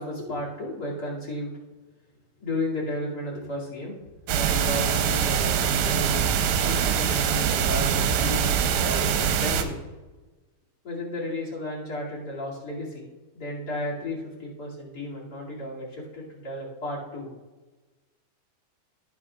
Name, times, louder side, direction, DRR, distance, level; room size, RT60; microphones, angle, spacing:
voice 1, 0.0-1.5 2.4-4.0 4.3-9.8 10.8-13.0 13.3-17.3, left 1 dB, 30° left, -6 dB, 2.1 m, -33 dB
sound 1, 4.3-9.6, right 8 dB, 85° right, 3.0 m, -23 dB
15.0 x 8.2 x 2.4 m, 1.2 s
omnidirectional pair, 5.1 m